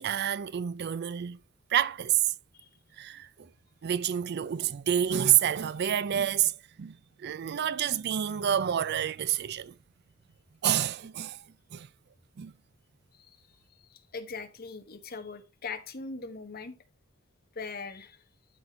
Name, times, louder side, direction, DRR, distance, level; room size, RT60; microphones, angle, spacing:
voice 1, 0.0-1.4 1.7-2.3 3.0-3.5 3.8-9.8 10.6-11.5 11.7-11.9 12.4-12.5, right 10 dB, 55° right, 0.4 m, -28 dB
voice 2, 13.9-16.8 17.5-18.2, left 4 dB, 50° left, 1.2 m, -40 dB
12.0 x 4.1 x 4.2 m
head